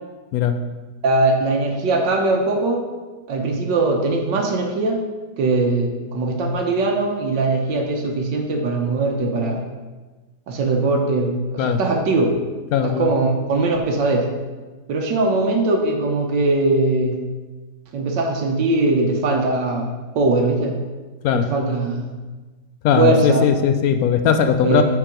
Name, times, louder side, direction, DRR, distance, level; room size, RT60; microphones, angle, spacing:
voice 1, 1.0-2.8 3.3-5.0 5.4-9.7 10.5-12.3 12.8-14.3 14.9-17.2 17.9-20.8 21.3-22.1 23.0-23.5 24.6-24.8, right 2 dB, 80° right, 2 dB, 1.5 m, -20 dB
voice 2, 12.7-13.1 21.2-21.5 22.8-24.8, left 7 dB, 70° left, 8 dB, 0.8 m, -18 dB
6.7 x 5.8 x 5.1 m, 1.3 s
omnidirectional pair, 1.9 m